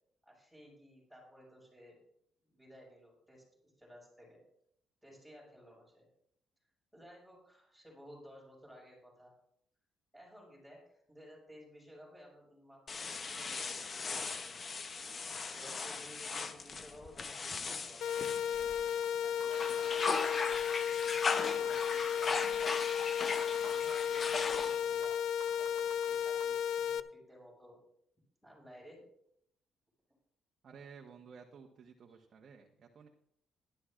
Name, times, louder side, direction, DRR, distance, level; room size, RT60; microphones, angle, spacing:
voice 1, 0.2-1.9 2.4-4.4 5.0-6.1 6.9-9.4 10.1-14.6 15.5-18.3 19.2-22.7 23.7-25.3 25.6-27.8 28.4-29.1 32.1-32.2, equal, ahead, -3 dB, 5.7 m, -56 dB
sound 1, 12.9-19.1 19.4-25.0, left 4 dB, 40° left, 0.8 m, -38 dB
sound 2, 18.0-27.0, left 9 dB, 75° left, 0.4 m, -34 dB
sound 3, 18.5-18.6 19.0-19.1 19.4-20.6 21.0-21.2 21.4-22.6 23.0-23.1 23.4-24.6 25.0-25.1 25.4-26.4, right 9 dB, 85° right, 1.2 m, -50 dB
voice 2, 30.6-33.1, right 6 dB, 55° right, 1 dB, 1.1 m, -54 dB
16.0 x 12.0 x 2.5 m, 0.71 s
cardioid pair, 90°, 0 cm